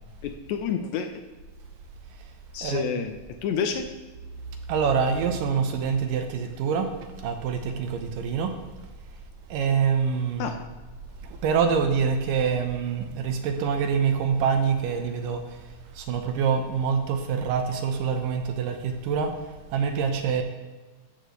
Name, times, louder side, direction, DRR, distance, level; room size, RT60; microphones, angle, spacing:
voice 1, 0.2-1.2 2.5-3.2 3.4-3.9 10.4-10.6, left 7 dB, 85° left, 6 dB, 1.6 m, -29 dB
voice 2, 4.7-6.9 7.2-8.5 9.5-10.5 11.2-20.4, right 6 dB, 80° right, 5 dB, 2.5 m, -26 dB
14.0 x 6.7 x 3.1 m, 1.3 s
omnidirectional pair, 4.0 m